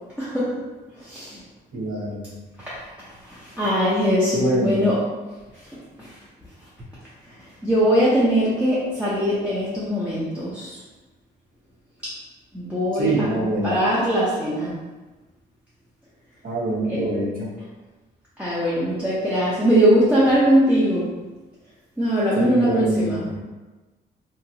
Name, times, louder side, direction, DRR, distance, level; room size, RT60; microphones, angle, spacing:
voice 1, 1.0-1.4 2.7-2.8 3.3-4.9 6.0-6.1 7.6-10.7 12.5-13.1 13.6-14.7 16.9-17.1 18.4-21.0 22.0-23.2, equal, 5° right, -10 dB, 0.7 m, -21 dB
voice 2, 1.7-2.2 4.3-4.9 12.9-13.8 16.4-17.5 22.4-23.4, right 1 dB, 45° right, -5 dB, 1.0 m, -25 dB
2.9 x 2.5 x 2.8 m, 1.2 s
cardioid pair, 90°, 20 cm